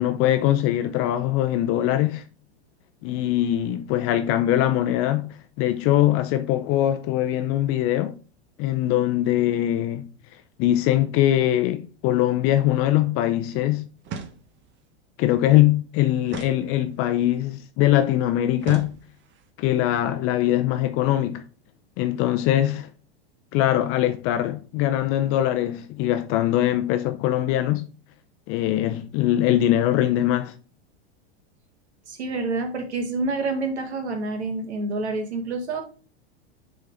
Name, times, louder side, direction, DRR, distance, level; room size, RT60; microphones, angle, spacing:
voice 1, 0.0-2.2 3.0-8.1 8.6-10.0 10.6-13.9 15.2-18.9 19.6-21.4 22.0-22.9 23.5-27.9 28.5-30.5, left 13 dB, 45° left, 0.5 m, -22 dB
sound 1, 14.0-14.8 16.3-17.2 18.6-19.5, right 6 dB, 35° right, 1.0 m, -38 dB
voice 2, 32.1-35.8, right 3 dB, 85° right, 1.8 m, -28 dB
6.6 x 4.1 x 3.5 m
hypercardioid pair, 110°, 32 cm